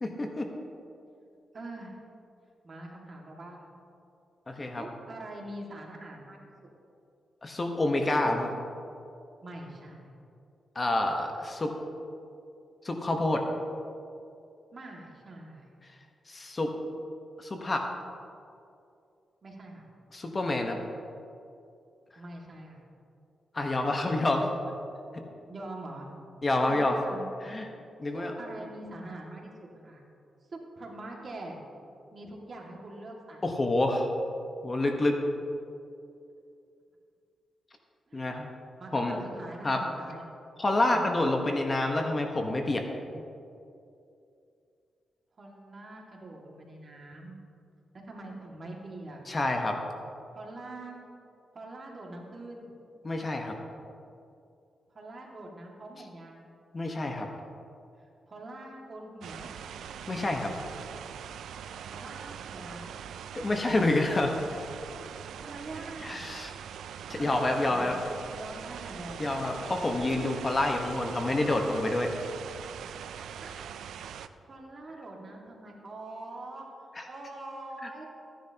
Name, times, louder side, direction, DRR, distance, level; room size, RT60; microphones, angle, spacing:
voice 1, 0.0-0.5 4.5-4.8 7.4-8.5 10.7-11.7 12.8-13.4 16.3-16.7 17.4-17.9 20.1-20.8 23.5-24.5 26.4-27.0 27.4-27.7 28.0-28.3 33.4-34.1 34.6-35.2 38.1-38.5 38.9-39.1 39.6-39.8 40.6-42.8 43.1-43.2 49.3-49.8 53.0-53.5 56.7-57.3 60.1-60.5 63.3-64.4 66.0-66.5 67.1-68.0 69.2-72.1 77.0-77.1, left 2 dB, 30° left, 3 dB, 1.2 m, -28 dB
voice 2, 1.5-2.0 2.6-3.7 4.8-6.4 8.3-8.4 9.4-10.1 14.7-15.7 19.4-19.9 22.2-22.8 25.5-26.1 26.6-27.3 28.1-30.0 30.5-31.6 32.1-33.6 38.1-38.4 38.8-40.2 40.9-41.2 45.4-47.4 48.0-49.2 50.3-51.0 51.5-52.7 54.9-56.4 58.3-59.5 61.9-63.0 65.4-66.3 67.2-67.9 68.3-69.3 73.4-73.6 74.4-76.7 77.1-78.0, right 2 dB, 45° right, -1 dB, 2.1 m, -43 dB
sound 1, 59.2-74.3, right 8 dB, 90° right, 0.4 m, -42 dB
15.0 x 10.0 x 2.9 m, 2.6 s
cardioid pair, 80°, 0 cm